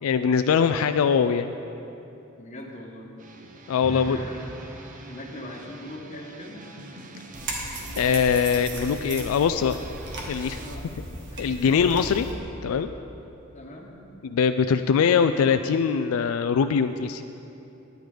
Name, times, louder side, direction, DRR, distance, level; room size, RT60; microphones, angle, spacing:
voice 1, 0.0-1.6 3.7-4.2 8.0-9.8 10.3-10.6 11.4-12.3 12.6-12.9 14.3-17.2, left 6 dB, 80° left, 9 dB, 0.3 m, -22 dB
voice 2, 2.4-3.1 3.8-4.4 5.1-6.6 10.6-10.9 11.3-11.9 13.5-13.9, left 1 dB, 35° left, -1 dB, 1.3 m, -40 dB
sound 1, 3.2-10.8, right 2 dB, 40° right, 0.7 m, -45 dB
sound 2, 3.8-5.9, right 1 dB, 10° right, 0.4 m, -41 dB
sound 3, 7.3-12.3, right 1 dB, 60° right, 1.6 m, -36 dB
10.5 x 9.3 x 5.0 m, 2.9 s
head